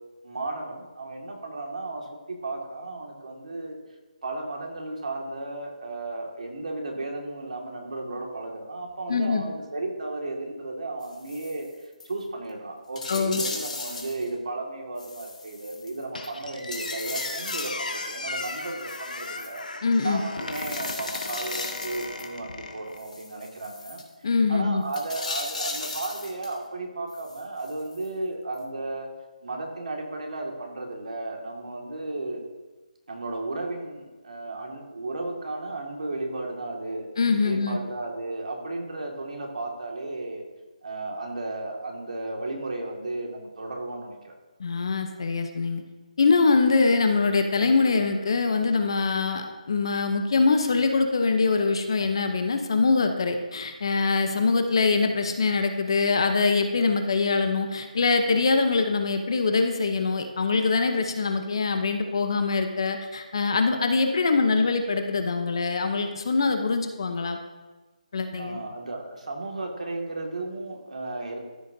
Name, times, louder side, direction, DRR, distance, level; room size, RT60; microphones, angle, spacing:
voice 1, 0.2-3.8 4.2-11.7 12.0-19.6 20.0-24.0 24.5-29.1 29.4-32.4 33.1-37.1 37.4-40.4 40.8-44.4 68.4-71.4, right 2 dB, 60° right, 1 dB, 1.9 m, -34 dB
voice 2, 9.1-9.4 13.1-13.4 19.8-20.2 24.2-24.8 37.2-37.8 44.6-45.8 46.2-67.4 68.1-68.6, left 4 dB, 35° left, 6 dB, 0.7 m, -23 dB
sound 1, 11.0-11.7 12.0-12.1 12.5-12.6 13.0-14.3 15.0-16.3 16.7-17.8 18.3-19.6 20.5-22.3 23.0-24.0 24.9-26.6 27.1-28.1 28.6-28.7, left 3 dB, 65° left, 2.0 m, -37 dB
Squeak, 16.1-23.0, left 3 dB, 90° left, 1.2 m, -36 dB
14.0 x 6.4 x 2.7 m, 1.2 s
hypercardioid pair, 175°, 4 cm